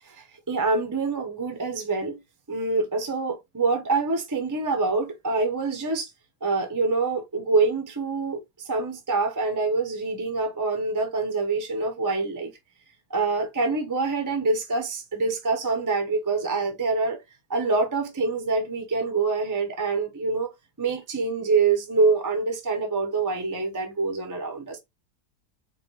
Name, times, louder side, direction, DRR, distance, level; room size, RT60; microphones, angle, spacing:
voice 1, 0.1-2.2 2.5-6.1 6.4-12.5 13.1-17.2 17.5-20.5 20.8-24.8, right 3 dB, 20° right, 0.6 m, -25 dB
4.9 x 2.3 x 3.2 m
omnidirectional pair, 1.7 m